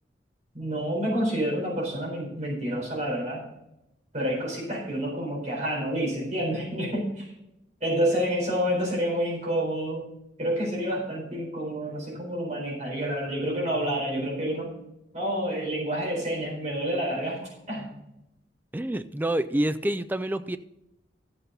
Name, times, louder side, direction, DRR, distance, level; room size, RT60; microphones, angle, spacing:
voice 1, 0.5-3.5 4.1-7.3 7.8-10.1 10.4-14.8 15.1-18.0, equal, 40° right, -3 dB, 4.1 m, -28 dB
voice 2, 18.7-20.6, right 1 dB, 10° right, 11 dB, 0.4 m, -27 dB
13.5 x 8.0 x 4.0 m, 0.87 s
head